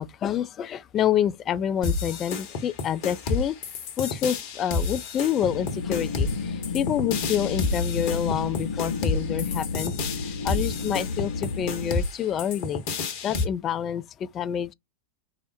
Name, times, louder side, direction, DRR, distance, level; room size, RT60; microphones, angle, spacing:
voice 1, 0.0-3.6 4.0-9.9 10.4-12.8 13.2-14.7, left 9 dB, 30° left, 0.4 m, -27 dB
sound 1, 1.8-13.4, left 3 dB, 45° left, 1.1 m, -30 dB
sound 2, 5.4-11.9, left 4 dB, 70° left, 0.9 m, -31 dB
4.9 x 2.0 x 4.2 m
figure-of-eight pair, 90°, 0 cm